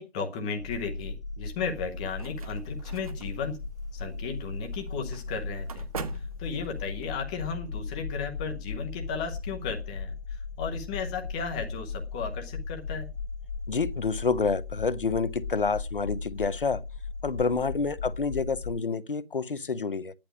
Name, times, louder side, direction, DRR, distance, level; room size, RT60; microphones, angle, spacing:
voice 1, 0.0-3.6 3.9-5.9 6.1-13.1, left 5 dB, 5° left, 0.8 m, -35 dB
sound 1, 0.6-18.7, left 4 dB, 30° left, 1.0 m, -37 dB
sound 2, 1.7-7.1, right 5 dB, 35° right, 1.3 m, -44 dB
voice 2, 13.7-16.8 17.2-20.1, left 4 dB, 60° left, 1.0 m, -28 dB
12.0 x 10.5 x 6.1 m
figure-of-eight pair, 145°, 31 cm